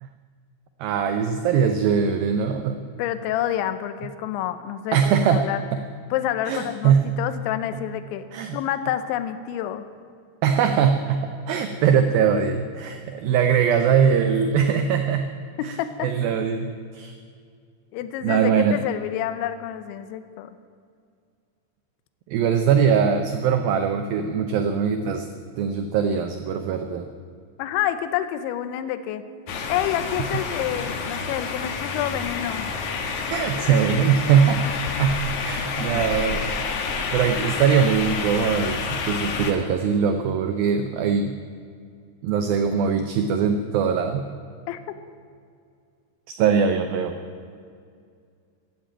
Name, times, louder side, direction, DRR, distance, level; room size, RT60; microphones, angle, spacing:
voice 1, 0.8-2.8 4.9-5.5 5.7-5.8 6.5-7.1 7.7-7.8 8.3-8.6 10.4-15.3 15.6-16.7 16.9-17.1 18.2-18.8 22.3-25.3 25.6-27.1 33.3-34.6 35.0-36.8 37.1-41.4 42.2-44.3 46.4-47.2, right 7 dB, 85° right, 7 dB, 2.1 m, -21 dB
voice 2, 3.0-5.6 6.1-8.3 8.5-9.9 15.6-16.1 17.9-20.5 27.6-29.2 29.7-32.7 35.9-36.0 44.7-44.8, left 11 dB, 90° left, 11 dB, 3.1 m, -28 dB
sound 1, 29.5-39.5, left 5 dB, 65° left, 1.9 m, -29 dB
15.0 x 9.2 x 8.9 m, 2.3 s
omnidirectional pair, 5.2 m